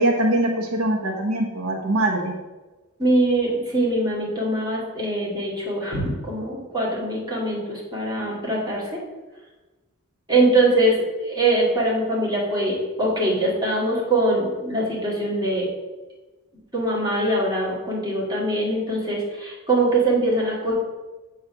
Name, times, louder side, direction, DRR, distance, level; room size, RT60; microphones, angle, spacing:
voice 1, 0.0-2.3, right 1 dB, 80° right, 1 dB, 0.9 m, -22 dB
voice 2, 3.0-9.0 10.3-15.7 16.7-20.7, right 1 dB, 20° right, -5 dB, 1.9 m, -22 dB
6.6 x 3.2 x 6.0 m, 1.2 s
head